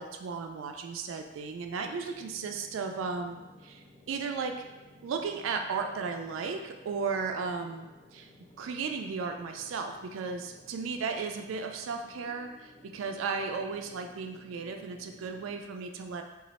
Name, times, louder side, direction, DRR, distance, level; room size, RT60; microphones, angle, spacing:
voice 1, 0.0-4.6 5.0-8.3 8.6-16.2, right 5 dB, 85° right, 5 dB, 0.3 m, -35 dB
sound 1, 1.7-15.7, left 1 dB, 25° left, 0.5 m, -57 dB
3.0 x 2.4 x 4.0 m, 1.1 s
head